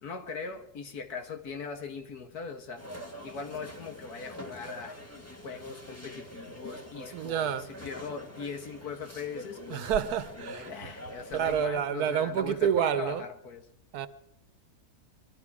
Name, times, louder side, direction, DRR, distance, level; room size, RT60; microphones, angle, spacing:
voice 1, 0.0-2.8 3.2-5.0 5.4-9.9 10.4-13.7, left 5 dB, 70° left, 1.9 m, -40 dB
sound 1, 2.8-11.7, equal, 10° left, 1.5 m, -45 dB
voice 2, 7.1-7.7 9.7-10.7 11.3-13.3 13.9-14.1, right 8 dB, 70° right, 1.2 m, -28 dB
22.5 x 12.5 x 4.8 m
omnidirectional pair, 1.7 m